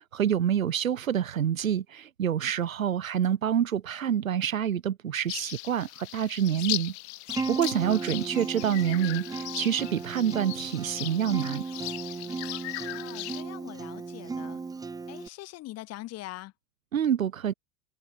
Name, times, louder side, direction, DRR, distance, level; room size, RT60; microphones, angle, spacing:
voice 1, 0.0-6.9 7.5-11.6 16.9-17.5, right 9 dB, 80° right, 1.4 m, -27 dB
sound 1, 5.3-13.4, left 22 dB, 55° left, 1.9 m, -38 dB
Acoustic guitar, 7.3-15.3, right 4 dB, 10° right, 0.9 m, -36 dB
voice 2, 12.8-14.6 15.1-16.5, left 16 dB, 40° left, 3.6 m, -43 dB
hypercardioid pair, 95°, 40 cm